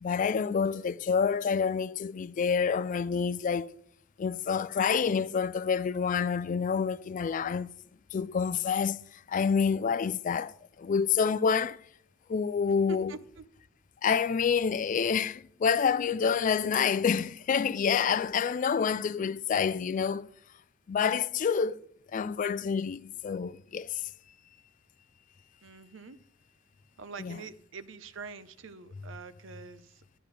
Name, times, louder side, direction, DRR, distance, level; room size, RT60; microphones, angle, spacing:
voice 1, 0.0-3.7 4.2-7.7 8.1-9.0 9.3-11.8 12.3-13.2 14.0-20.3 20.9-21.8 22.1-24.1 27.2-27.4, left 6 dB, 40° left, 0.3 m, -28 dB
voice 2, 12.9-13.4 25.6-26.2 27.0-29.9, right 5 dB, 65° right, 0.7 m, -45 dB
13.0 x 9.8 x 3.3 m
head